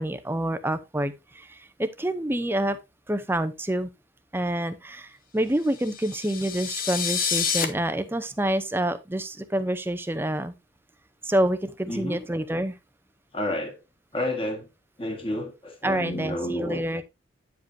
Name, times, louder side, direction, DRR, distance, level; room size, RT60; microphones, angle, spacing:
voice 1, 0.0-2.8 3.1-3.9 4.3-10.5 11.2-12.8 15.8-17.0, right 1 dB, 10° right, 0.6 m, -27 dB
sound 1, 5.8-7.6, left 7 dB, 45° left, 1.1 m, -28 dB
voice 2, 11.9-12.2 13.3-13.8 14.1-14.7 15.0-16.8, left 1 dB, 25° left, 1.6 m, -30 dB
9.3 x 7.4 x 2.7 m
head